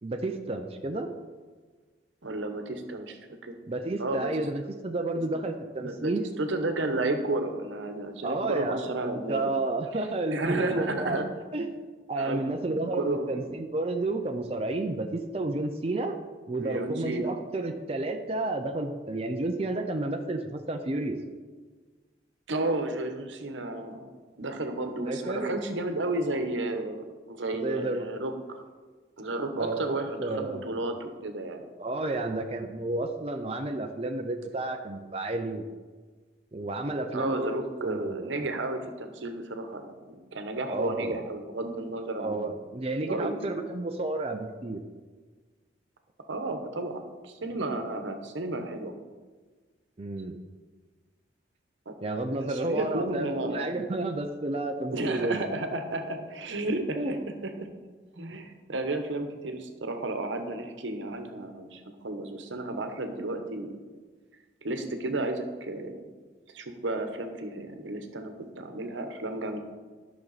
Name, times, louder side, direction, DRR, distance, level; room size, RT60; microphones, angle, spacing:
voice 1, 0.0-1.1 3.7-6.2 8.2-11.2 11.5-11.8 12.1-16.2 16.5-21.2 25.0-25.5 27.5-28.0 29.6-30.6 31.8-35.7 36.5-38.3 40.7-41.2 42.2-44.8 50.0-50.4 52.0-55.4 57.0-57.2 58.2-58.4, right 2 dB, 30° right, 4 dB, 0.5 m, -31 dB
voice 2, 2.2-3.5 4.0-4.5 5.8-9.4 10.3-11.3 12.2-12.4 12.7-13.5 16.6-17.3 22.5-24.1 24.4-28.6 29.2-31.7 37.1-42.5 43.0-43.6 46.3-48.9 51.9-52.0 52.3-53.8 54.9-57.2 57.4-57.7 58.2-63.8 64.6-66.0 66.5-69.6, right 2 dB, 85° right, 6 dB, 1.0 m, -32 dB
12.0 x 6.0 x 4.1 m, 1.4 s
head